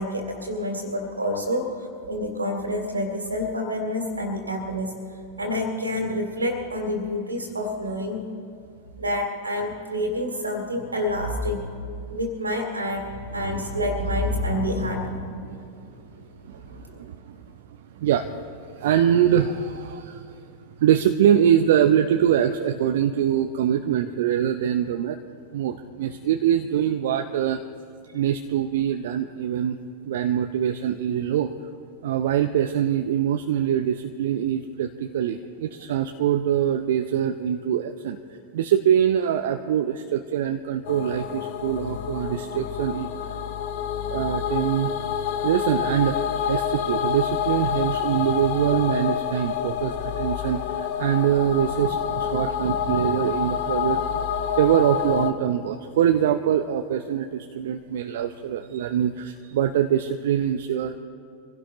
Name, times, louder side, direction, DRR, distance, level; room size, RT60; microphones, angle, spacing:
voice 1, 0.0-5.0 5.4-8.2 9.0-11.7 12.1-15.9 16.6-17.0, left 1 dB, 80° right, 3 dB, 2.7 m, -28 dB
voice 2, 16.4-17.4 18.0-25.2 25.5-27.6 28.1-29.8 30.0-31.5 32.0-38.2 38.5-43.1 44.1-44.9 45.4-46.2 46.5-54.0 54.6-60.9, right 10 dB, 55° right, 6 dB, 0.6 m, -23 dB
sound 1, 40.8-55.3, left 9 dB, 50° left, 1.1 m, -28 dB
25.5 x 16.5 x 3.1 m, 2.5 s
figure-of-eight pair, 90°, 0 cm